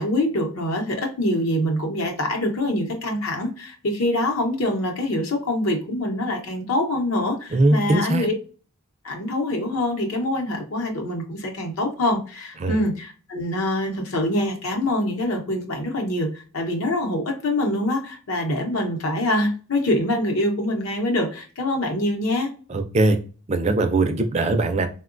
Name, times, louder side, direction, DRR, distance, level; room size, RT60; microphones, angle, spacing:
voice 1, 0.0-8.3 9.0-22.5, left 1 dB, 75° left, 2 dB, 0.7 m, -25 dB
voice 2, 7.5-8.3 12.6-12.8 22.7-23.2 23.5-24.9, right 2 dB, 30° right, 7 dB, 0.4 m, -20 dB
3.6 x 2.2 x 2.5 m, 0.37 s
head